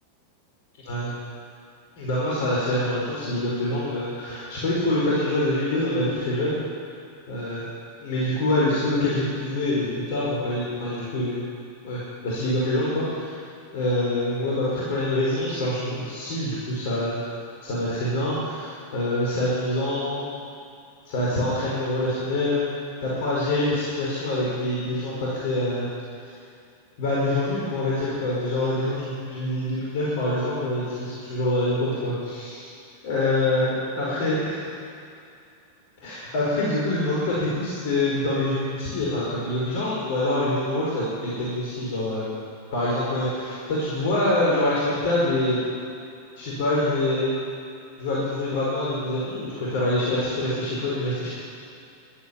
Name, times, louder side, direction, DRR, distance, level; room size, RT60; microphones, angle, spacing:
voice 1, 2.0-6.6 7.3-7.6 8.0-11.4 11.8-13.3 13.7-17.2 17.6-20.2 21.0-22.6 23.0-25.9 27.0-32.7 33.0-34.7 36.0-42.3 42.7-45.6 46.4-47.4 48.0-51.3, left 1 dB, 50° left, -6 dB, 5.1 m, -25 dB
15.5 x 12.0 x 7.4 m, 2.5 s
figure-of-eight pair, 90°, 0 cm